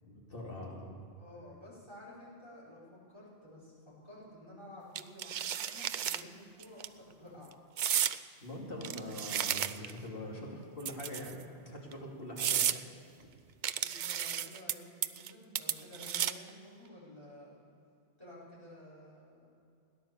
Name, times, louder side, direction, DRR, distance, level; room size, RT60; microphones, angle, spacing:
voice 1, 0.0-1.0 8.4-12.8 13.2-13.3, left 1 dB, 60° left, -2 dB, 2.9 m, -43 dB
voice 2, 1.2-7.5 13.8-17.6 18.2-19.5, left 1 dB, 25° left, -7 dB, 5.2 m, -52 dB
sound 1, 5.0-6.2 6.6-6.9 7.8-8.2 8.8-10.0 10.8-11.4 11.9-12.0 12.4-12.8 13.6-14.7 15.0-15.3 15.6-16.5, right 10 dB, 60° right, 0.6 m, -33 dB
17.5 x 10.5 x 7.1 m, 2.5 s
omnidirectional pair, 1.1 m